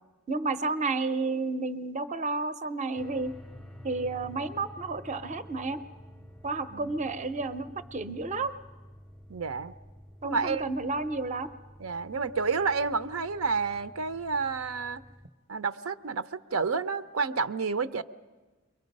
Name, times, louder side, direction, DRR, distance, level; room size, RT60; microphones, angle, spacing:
voice 1, 0.3-3.3 3.8-5.8 6.4-8.6 10.2-11.5, right 3 dB, 35° right, 11 dB, 0.6 m, -31 dB
sound 1, 3.0-15.3, equal, ahead, 0.6 m, -50 dB
voice 2, 9.3-9.7 10.2-10.6 11.8-15.0 15.5-18.0, right 4 dB, 85° right, 11 dB, 0.7 m, -30 dB
30.0 x 23.0 x 5.4 m, 1.2 s
head